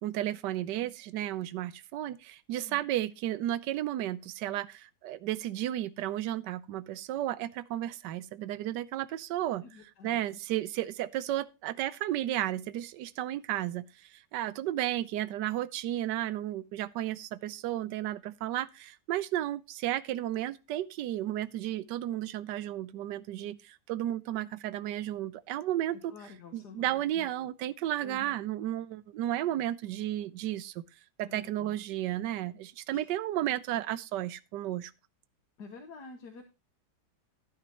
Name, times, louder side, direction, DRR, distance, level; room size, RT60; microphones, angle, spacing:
voice 1, 0.0-26.1 26.5-30.8 31.2-34.9, right 13 dB, 70° right, 1.2 m, -33 dB
voice 2, 9.6-10.4 25.9-27.3 28.0-28.4 31.3-31.8 32.9-33.2 35.6-36.4, left 5 dB, 60° left, 1.8 m, -49 dB
12.0 x 9.5 x 2.9 m
omnidirectional pair, 2.1 m